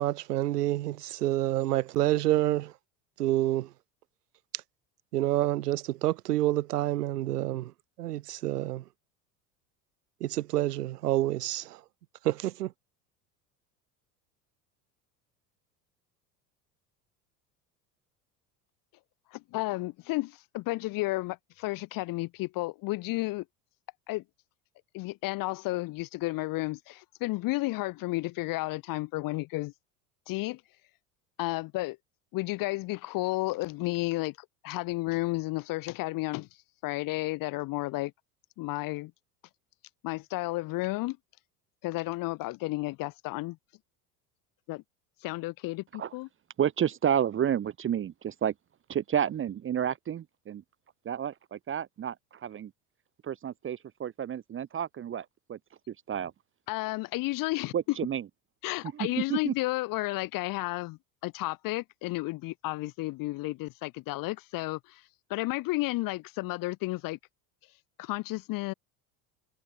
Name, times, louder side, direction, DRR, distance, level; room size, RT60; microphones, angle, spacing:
voice 1, 0.0-2.7 3.2-3.7 5.1-7.7 8.0-8.8 10.2-11.8 12.2-12.7, right 15 dB, 80° right, 1.4 m, -28 dB
voice 2, 19.3-23.4 24.1-24.2 24.9-29.7 30.3-30.6 31.4-32.0 32.3-34.3 34.6-36.5 36.8-38.1 38.6-39.1 40.0-41.2 41.8-43.6 44.7-44.8 45.2-46.3 56.7-57.7 58.6-65.0 65.3-67.2 68.0-68.7, left 20 dB, 45° left, 0.8 m, -32 dB
voice 3, 46.6-48.5 48.9-50.6 51.0-52.7 53.2-55.6 55.9-56.3 57.7-58.3 58.9-59.5, right 9 dB, 25° right, 0.8 m, -31 dB
hypercardioid pair, 75°, 46 cm